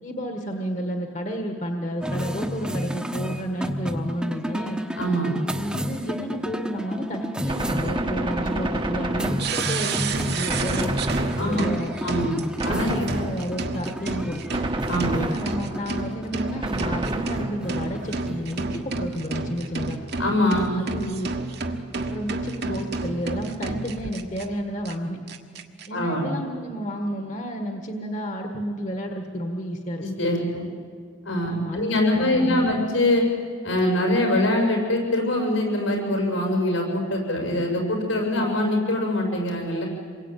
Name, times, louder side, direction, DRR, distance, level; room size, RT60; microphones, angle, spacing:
voice 1, 0.0-4.8 5.5-10.9 11.4-11.9 12.6-14.4 15.1-20.0 20.8-21.3 22.1-25.2 25.9-30.0 31.5-32.7, equal, 40° left, 3 dB, 1.6 m, -31 dB
sound 1, 2.0-20.7, equal, 5° right, 1.1 m, -32 dB
voice 2, 5.0-5.4 11.4-11.7 12.0-12.3 12.6-13.1 14.8-15.2 20.2-20.7 25.9-26.3 30.0-30.6 31.2-33.3 33.6-39.9, left 1 dB, 85° left, 1 dB, 7.3 m, -23 dB
Gunshot gunfire, 7.5-10.0 10.5-11.9 12.6-13.6 14.5-15.9 16.6-17.9, right 2 dB, 25° right, 1.2 m, -30 dB
sound 2, 9.4-24.4 24.8-24.9 25.3-25.9, right 3 dB, 55° right, 1.6 m, -30 dB
27.5 x 22.5 x 9.2 m, 2.1 s
head